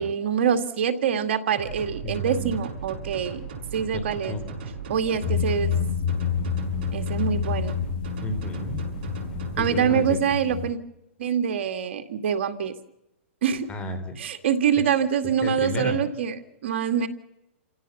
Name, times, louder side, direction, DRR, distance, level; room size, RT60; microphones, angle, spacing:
voice 1, 0.0-3.4 3.7-4.4 4.9-5.7 6.9-7.8 9.6-10.8 11.2-12.7 13.4-13.7 14.2-16.4 16.6-17.1, right 8 dB, 65° right, 7 dB, 2.2 m, -25 dB
sound 1, 1.5-9.8, right 5 dB, 45° right, 6.7 m, -37 dB
voice 2, 2.0-2.6 3.9-4.6 8.2-8.8 9.6-10.2 13.7-14.2 15.4-16.0, left 1 dB, 15° left, 9 dB, 3.8 m, -32 dB
sound 2, 5.2-10.7, left 7 dB, 50° left, 2.3 m, -28 dB
29.0 x 16.5 x 7.2 m, 0.90 s
hypercardioid pair, 150°, 7 cm